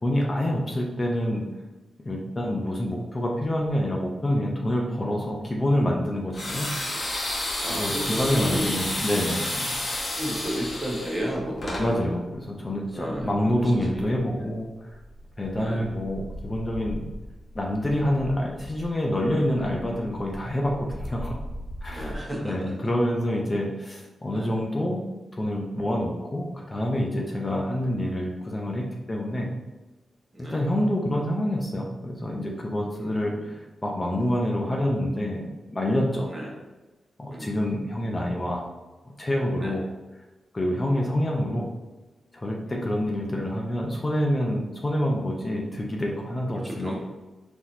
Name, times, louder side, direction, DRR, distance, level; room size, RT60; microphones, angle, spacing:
voice 1, 0.0-1.4 2.0-6.7 7.8-9.8 11.8-14.9 15.4-17.0 17.5-21.4 21.8-22.1 22.4-29.5 30.4-36.3 37.2-38.6 39.0-39.8 40.5-41.7 42.3-46.9, left 1 dB, 30° left, -1 dB, 0.7 m, -27 dB
sound 1, 6.3-11.9, left 1 dB, 55° left, 1.1 m, -30 dB
sound 2, 7.1-22.2, equal, 85° left, 1.1 m, -42 dB
voice 2, 7.6-8.8 10.1-12.2 12.9-13.6 14.0-14.1 15.6-15.9 21.9-22.9 24.3-24.6 27.5-27.7 30.3-30.6 32.9-33.5 36.3-36.5 37.3-37.6 39.6-39.8 40.9-41.1 42.6-42.9 46.5-46.9, equal, 25° right, -3 dB, 1.3 m, -33 dB
3.9 x 3.0 x 2.7 m, 1.2 s
supercardioid pair, 50°, 0 cm